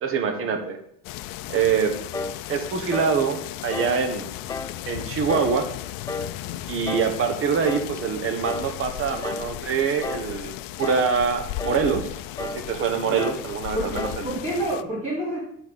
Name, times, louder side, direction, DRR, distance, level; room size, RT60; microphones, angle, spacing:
voice 1, 0.0-0.8 1.5-2.0 2.5-4.3 4.9-5.7 6.7-12.1 12.4-14.3, right 6 dB, 40° right, 5 dB, 1.3 m, -24 dB
sound 1, 1.0-14.8, left 14 dB, 75° left, 0.6 m, -36 dB
sound 2, 2.1-2.4 2.9-3.2 3.7-4.0 4.5-4.8 5.3-5.6 6.1-6.4 6.9-7.2 7.6-7.9 8.4-8.7 9.2-9.5 10.0-10.3 10.8-11.1 11.6-11.9 12.4-12.7 13.2-13.5 14.0-14.3, left 3 dB, 10° left, 0.3 m, -32 dB
voice 2, 13.7-15.4, right 1 dB, 20° right, -9 dB, 4.6 m, -28 dB
8.4 x 6.3 x 7.0 m, 0.70 s
cardioid pair, 165°, 34 cm